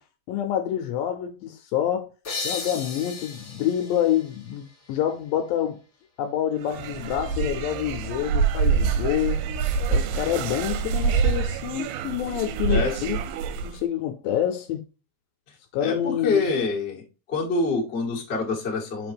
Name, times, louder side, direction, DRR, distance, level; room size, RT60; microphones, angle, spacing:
voice 1, 0.3-2.1 2.4-5.8 6.2-9.4 9.9-13.2 13.6-14.8 15.7-16.5, left 10 dB, 80° left, 2.1 m, -27 dB
sound 1, 2.2-5.7, left 4 dB, 35° left, 2.0 m, -36 dB
sound 2, 6.6-13.8, right 5 dB, 90° right, 2.6 m, -26 dB
voice 2, 12.7-13.2 15.8-17.0 17.3-19.1, left 3 dB, 55° left, 0.7 m, -26 dB
7.0 x 4.1 x 3.4 m
omnidirectional pair, 4.6 m